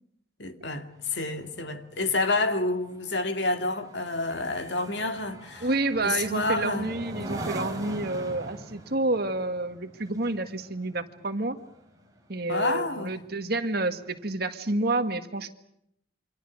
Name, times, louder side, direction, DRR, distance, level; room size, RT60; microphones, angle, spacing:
voice 1, 0.4-5.7 6.0-6.9 7.2-7.3 12.5-13.2, left 2 dB, 65° left, 2.3 m, -29 dB
sound 1, 0.9-12.6 13.0-13.3, right 1 dB, 20° right, 4.6 m, -42 dB
voice 2, 5.6-11.6 12.3-15.5, right 2 dB, 55° right, 1.8 m, -29 dB
28.5 x 25.5 x 6.3 m
head